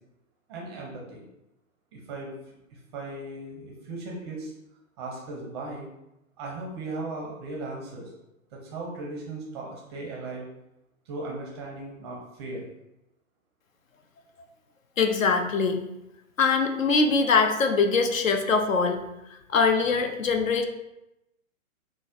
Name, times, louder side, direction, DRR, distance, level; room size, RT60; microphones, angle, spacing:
voice 1, 0.5-1.2 1.9-2.3 2.7-4.5 5.0-5.9 6.4-8.1 8.5-10.5 11.1-12.6, right 2 dB, 20° right, -2 dB, 0.5 m, -37 dB
voice 2, 15.0-15.9 16.4-19.0 19.3-20.6, left 4 dB, 70° left, 6 dB, 0.6 m, -23 dB
5.9 x 2.0 x 2.4 m, 0.89 s
figure-of-eight pair, 115°, 41 cm